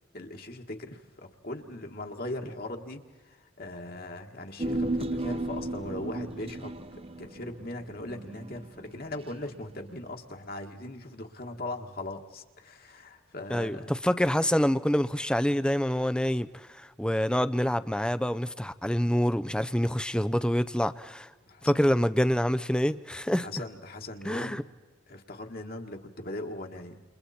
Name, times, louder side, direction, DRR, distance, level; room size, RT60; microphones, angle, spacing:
voice 1, 0.1-6.7 7.2-13.9 21.5-21.7 23.4-24.6 25.1-27.0, left 1 dB, 45° left, 1.8 m, -39 dB
Human voice, 4.6-9.2 9.5-9.6, right 2 dB, 30° right, 0.9 m, -34 dB
voice 2, 13.5-21.3 21.6-23.5 24.2-24.6, equal, 5° left, 0.6 m, -26 dB
29.5 x 29.5 x 4.4 m
head